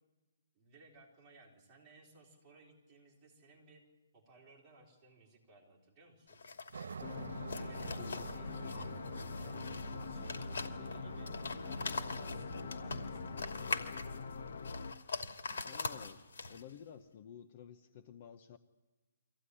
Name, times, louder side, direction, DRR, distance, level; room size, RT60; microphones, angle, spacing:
voice 1, 0.5-3.8 4.1-6.4 7.5-8.9 9.4-11.4 11.6-14.0, right 3 dB, 10° right, -4 dB, 4.2 m, -61 dB
sound 1, 6.3-16.8, left 4 dB, 75° left, 2.7 m, -43 dB
Aircraft, 6.7-13.6, right 6 dB, 70° right, 0.7 m, -49 dB
sound 2, 7.0-14.9, left 4 dB, 50° left, 1.0 m, -43 dB
voice 2, 7.9-8.3 15.6-16.2 16.5-18.6, left 8 dB, 30° left, 12 dB, 0.7 m, -52 dB
24.5 x 16.0 x 9.9 m, 1.2 s
hypercardioid pair, 175°, 0 cm